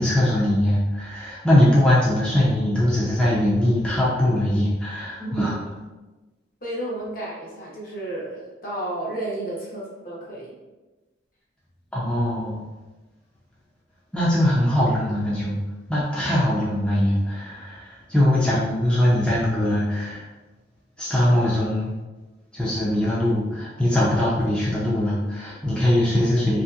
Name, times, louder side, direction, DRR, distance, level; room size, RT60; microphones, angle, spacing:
voice 1, 0.0-5.6 11.9-12.7 14.1-15.6 15.9-20.3 21.0-21.9 22.5-26.6, left 1 dB, 5° left, -8 dB, 0.4 m, -21 dB
voice 2, 5.2-5.8 6.6-10.6, right 1 dB, 50° left, -4 dB, 0.8 m, -32 dB
2.8 x 2.7 x 2.3 m, 1.1 s
head